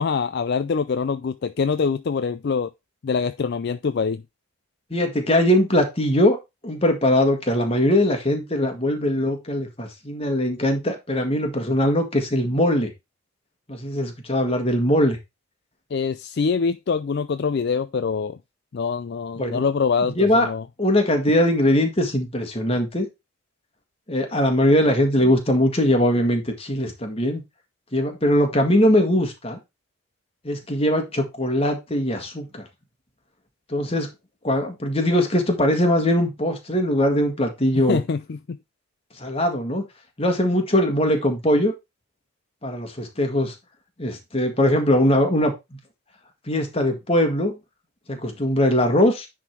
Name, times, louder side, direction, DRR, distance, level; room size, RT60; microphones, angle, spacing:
voice 1, 0.0-2.7 3.0-4.2 15.9-18.4 18.7-20.6 37.9-38.6, left 5 dB, 50° left, 0.4 m, -24 dB
voice 2, 4.9-6.4 6.6-12.9 13.7-15.2 19.4-19.6 20.0-20.5 20.8-23.1 24.1-27.4 27.9-29.6 30.4-32.7 33.7-34.1 34.4-38.0 39.2-39.8 40.2-41.7 42.6-43.5 44.0-45.5 46.5-47.6 48.1-49.3, left 1 dB, 25° left, 1.7 m, -21 dB
10.0 x 3.8 x 4.4 m
head